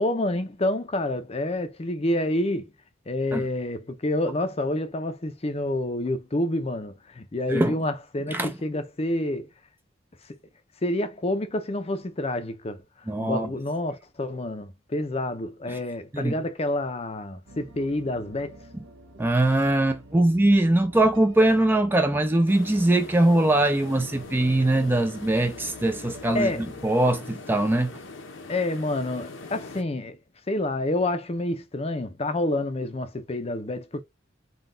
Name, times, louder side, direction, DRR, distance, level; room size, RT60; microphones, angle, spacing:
voice 1, 0.0-2.7 3.1-9.5 10.8-12.8 13.1-18.6 26.3-26.6 28.5-30.2 30.5-34.0, left 1 dB, 30° left, 0.6 m, -28 dB
voice 2, 13.1-13.5 15.7-15.8 16.1-16.3 19.2-26.5 26.8-28.0, right 1 dB, 10° right, 0.4 m, -22 dB
sound 1, 17.5-26.9, right 1 dB, 75° right, 1.1 m, -48 dB
sound 2, 22.5-29.8, left 3 dB, 80° left, 0.9 m, -42 dB
3.9 x 2.3 x 3.8 m
head